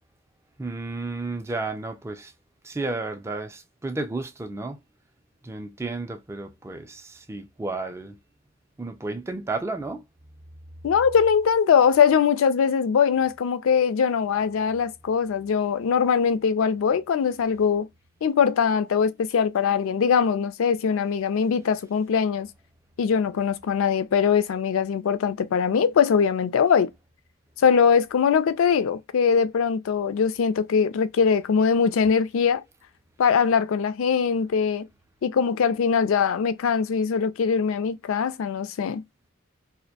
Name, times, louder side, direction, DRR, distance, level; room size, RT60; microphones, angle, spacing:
voice 1, 0.6-2.3 2.6-4.8 5.4-8.2 8.8-10.0, right 3 dB, 15° right, 0.3 m, -32 dB
voice 2, 10.8-17.9 18.2-22.5 23.0-26.9 27.6-32.6 33.2-34.9 35.2-39.0, left 6 dB, 70° left, 0.3 m, -22 dB
2.4 x 2.1 x 2.7 m
head